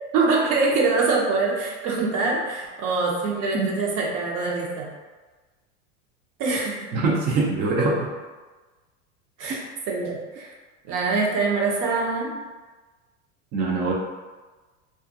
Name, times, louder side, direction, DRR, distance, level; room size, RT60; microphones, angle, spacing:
voice 1, 0.1-4.9 6.4-6.9 9.4-9.6 9.9-10.5 10.9-12.4, right 3 dB, 55° right, -2 dB, 0.8 m, -24 dB
voice 2, 6.9-8.1 9.4-9.6 13.5-13.9, right 3 dB, 30° right, -3 dB, 0.4 m, -23 dB
2.4 x 2.4 x 2.6 m, 1.3 s
supercardioid pair, 110°, 36 cm